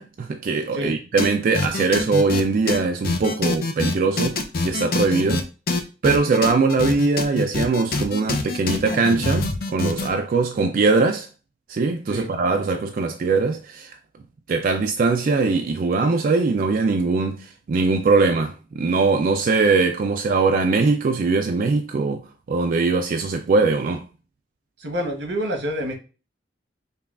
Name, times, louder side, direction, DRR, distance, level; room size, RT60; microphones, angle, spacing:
voice 1, 0.0-5.4 6.0-11.3 11.7-13.9 14.5-22.2 22.5-24.0, right 4 dB, 50° right, 0.3 m, -21 dB
sound 1, 1.2-1.3 1.5-2.4 2.7-2.8 3.0-5.4 5.7-10.1, left 3 dB, 55° left, 0.6 m, -24 dB
voice 2, 24.8-25.9, equal, 90° right, 1.0 m, -28 dB
5.4 x 2.3 x 2.4 m
head